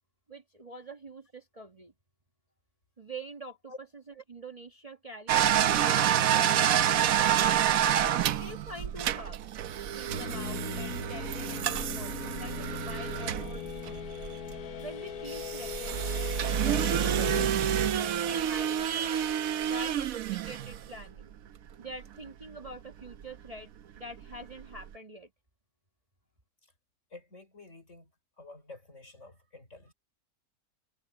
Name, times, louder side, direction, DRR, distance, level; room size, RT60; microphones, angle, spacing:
voice 1, 0.3-1.9 3.0-3.7 4.3-7.7 8.3-9.4 9.9-14.0 14.8-16.0 16.4-19.2 19.7-21.3 21.8-23.7 24.0-25.3, right 1 dB, 25° right, 1.5 m, -45 dB
sound 1, 5.3-14.6 15.3-21.2 22.7-22.8 23.1-23.2 24.3-24.4 24.6-24.8, right 10 dB, 70° right, 1.2 m, -28 dB
sound 2, 10.1-17.5, left 8 dB, 80° left, 1.6 m, -39 dB
voice 2, 27.1-28.1 28.4-29.9, left 3 dB, 55° left, 5.4 m, -49 dB
omnidirectional pair, 1.6 m